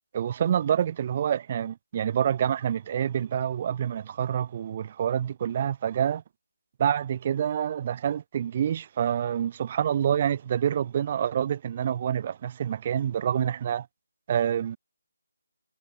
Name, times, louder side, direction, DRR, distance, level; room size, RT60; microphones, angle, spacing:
voice 1, 0.1-6.2 6.8-13.9 14.3-14.8, right 9 dB, 30° right, 0.5 m, -27 dB
figure-of-eight pair, 165°, 0 cm